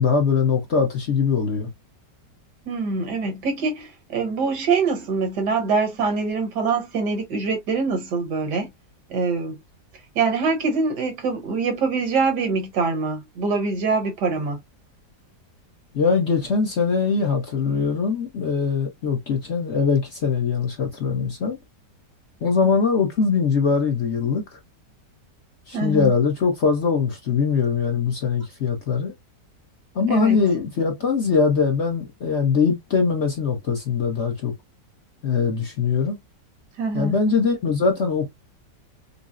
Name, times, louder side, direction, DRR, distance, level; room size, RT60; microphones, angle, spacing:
voice 1, 0.0-1.7 15.9-21.6 22.4-24.6 25.7-29.1 29.9-34.5 35.2-36.2 36.9-38.3, left 5 dB, 50° left, 0.9 m, -22 dB
voice 2, 2.7-8.7 9.1-9.6 10.2-14.6 25.7-26.1 30.1-30.4 36.8-37.1, right 4 dB, 75° right, 1.7 m, -24 dB
5.4 x 2.0 x 2.4 m
omnidirectional pair, 1.9 m